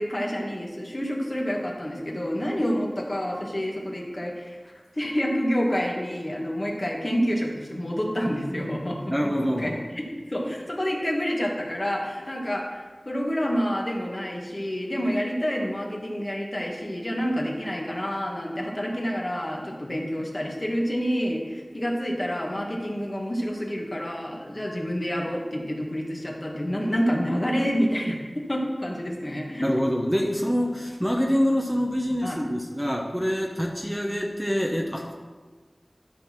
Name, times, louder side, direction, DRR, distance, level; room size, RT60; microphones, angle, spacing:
voice 1, 0.0-9.3 9.6-9.7 10.3-29.7 32.2-32.4, equal, 40° left, -1 dB, 1.8 m, -28 dB
voice 2, 9.1-9.8 29.6-35.1, equal, 5° right, 1 dB, 1.0 m, -25 dB
12.0 x 4.1 x 5.9 m, 1.4 s
wide cardioid pair, 45°, 0 cm